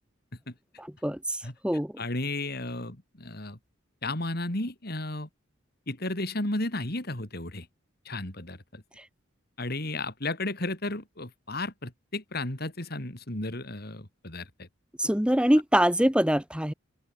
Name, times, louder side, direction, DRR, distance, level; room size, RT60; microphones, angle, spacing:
voice 1, 0.8-1.4 1.6-1.9 15.0-16.7, equal, 5° right, 1.3 m, -24 dB
voice 2, 2.0-3.6 4.0-5.3 5.9-7.7 8.1-8.8 9.6-14.7, left 2 dB, 50° left, 3.4 m, -33 dB
open air
head